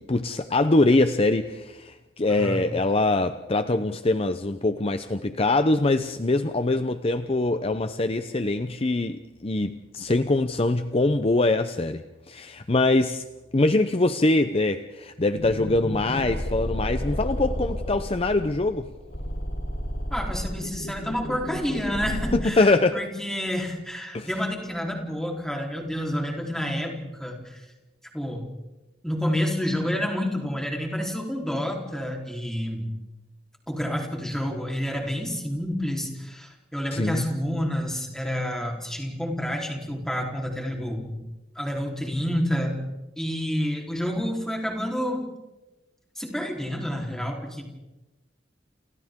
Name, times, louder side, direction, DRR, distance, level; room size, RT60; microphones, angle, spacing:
voice 1, 0.0-13.2 13.5-18.9 22.3-23.0 24.1-24.3 36.9-37.2, left 2 dB, 30° left, 9 dB, 0.7 m, -23 dB
voice 2, 2.3-2.7 20.1-27.6 28.1-28.5 29.0-32.9 33.7-41.1 41.6-42.8 43.2-45.3 46.2-47.6, equal, 5° left, 0 dB, 3.7 m, -29 dB
sound 1, 15.3-22.4, equal, 75° left, 3.7 m, -32 dB
29.0 x 29.0 x 3.7 m, 1.1 s
head